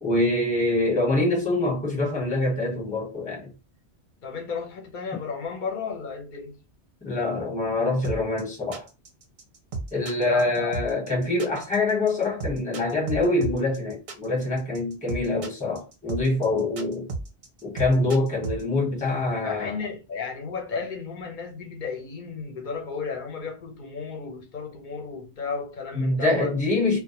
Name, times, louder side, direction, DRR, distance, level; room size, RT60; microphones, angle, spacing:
voice 1, 0.0-3.5 7.0-8.9 9.9-17.1 17.6-19.8 25.9-27.0, left 2 dB, 10° left, 0.9 m, -25 dB
voice 2, 4.2-6.6 10.2-10.8 19.4-26.6, left 5 dB, 55° left, 0.7 m, -33 dB
sound 1, 8.0-18.6, right 3 dB, 55° right, 0.6 m, -33 dB
2.1 x 2.1 x 2.8 m
omnidirectional pair, 1.1 m